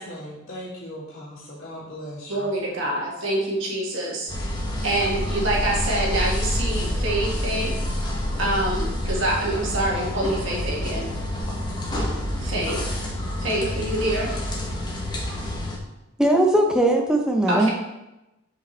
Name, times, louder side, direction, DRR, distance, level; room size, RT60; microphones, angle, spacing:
voice 1, 0.0-2.5, equal, 45° left, -13 dB, 2.7 m, -38 dB
voice 2, 2.3-4.3 4.8-7.7 8.4-11.1 12.4-13.0 13.4-14.3 17.5-17.7, right 1 dB, 65° right, -3 dB, 1.9 m, -26 dB
sound 1, 4.3-15.8, left 1 dB, 20° left, 1.0 m, -28 dB
voice 3, 16.2-17.7, right 1 dB, 5° right, 1 dB, 0.6 m, -19 dB
8.4 x 5.1 x 3.3 m, 0.95 s
head